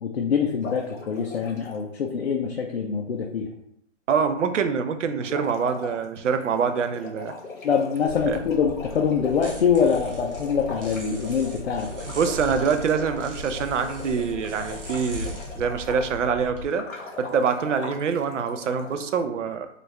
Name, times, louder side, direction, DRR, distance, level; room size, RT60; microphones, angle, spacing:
voice 1, 0.0-3.5 7.6-11.9, left 6 dB, 55° left, 1 dB, 0.5 m, -24 dB
sound 1, 0.6-1.8 5.1-16.2 16.7-19.2, left 3 dB, 90° left, 1.1 m, -39 dB
voice 2, 4.1-7.3 8.2-8.4 12.1-16.9 17.2-19.7, right 6 dB, 70° right, 8 dB, 0.5 m, -25 dB
sound 2, 8.1-16.6, left 1 dB, 45° right, 0.9 m, -38 dB
3.1 x 2.5 x 3.1 m, 0.75 s
hypercardioid pair, 170°, 39 cm